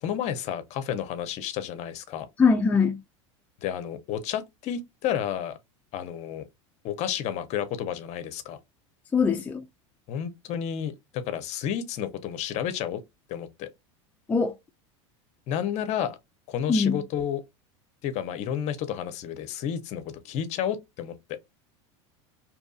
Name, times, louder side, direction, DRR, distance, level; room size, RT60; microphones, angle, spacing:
voice 1, 0.0-2.3 3.6-5.6 5.9-6.5 6.8-8.6 10.1-13.0 13.3-13.7 15.5-16.2 16.5-17.4 18.0-21.4, left 9 dB, 45° left, 0.6 m, -31 dB
voice 2, 2.4-3.0 9.1-9.6 14.3-14.5 16.7-17.0, left 5 dB, 10° left, 0.3 m, -22 dB
2.8 x 2.5 x 2.3 m
supercardioid pair, 120°, 16 cm